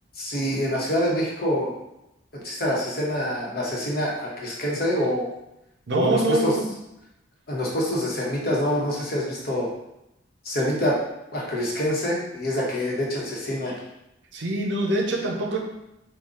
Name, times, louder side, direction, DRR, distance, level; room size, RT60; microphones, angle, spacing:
voice 1, 0.1-1.8 2.3-5.3 5.9-6.5 7.5-9.7 10.4-11.0 11.3-13.8, left 1 dB, 55° left, -3 dB, 1.0 m, -26 dB
voice 2, 5.9-6.7 14.3-15.6, right 2 dB, 75° right, 1 dB, 0.7 m, -24 dB
3.9 x 2.3 x 3.7 m, 0.87 s
head